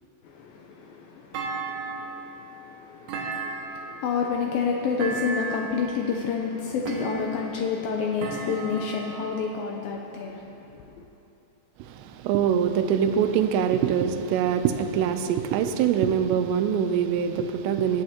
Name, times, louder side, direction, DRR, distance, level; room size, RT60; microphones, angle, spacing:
voice 1, 0.2-11.0, left 5 dB, 85° left, 2.1 m, -30 dB
Thump thud, 1.3-2.3 3.1-4.0 5.0-5.8 6.9-7.6 8.2-9.2, right 4 dB, 70° right, 2.6 m, -33 dB
voice 2, 11.8-18.0, right 8 dB, 85° right, 2.9 m, -24 dB
19.5 x 11.0 x 2.9 m
omnidirectional pair, 5.0 m